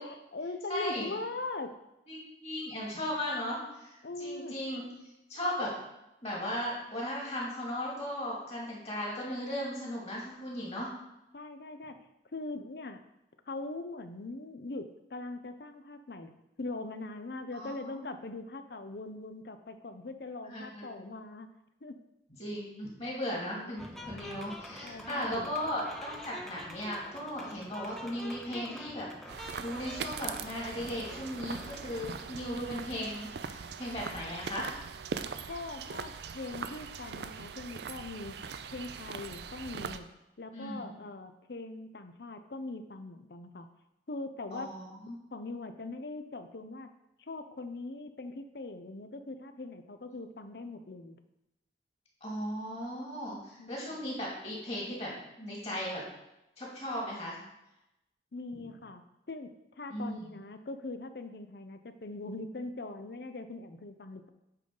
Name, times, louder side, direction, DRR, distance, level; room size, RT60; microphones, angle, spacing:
voice 1, 0.0-1.7 4.0-4.5 11.3-11.9 12.3-13.0 13.5-16.3 16.6-21.5 21.8-22.0 23.5-23.8 24.8-25.6 35.5-38.3 38.7-40.1 40.4-43.7 44.1-44.7 45.3-46.9 47.2-51.2 53.6-54.0 58.3-59.0 59.3-59.5 59.8-64.3, left 2 dB, 60° left, 8 dB, 0.6 m, -41 dB
voice 2, 0.7-1.1 2.1-4.8 5.3-5.7 6.2-10.9 17.5-18.1 20.5-21.1 22.4-34.7 40.5-40.9 44.5-45.2 52.2-55.1 55.4-56.0 56.6-57.4 58.5-58.6 59.9-60.3, equal, 35° left, -4 dB, 2.5 m, -37 dB
sound 1, 23.8-32.3, equal, ahead, 0.6 m, -47 dB
sound 2, 29.3-40.0, right 6 dB, 65° right, 0.4 m, -41 dB
8.2 x 3.9 x 5.4 m, 0.90 s
head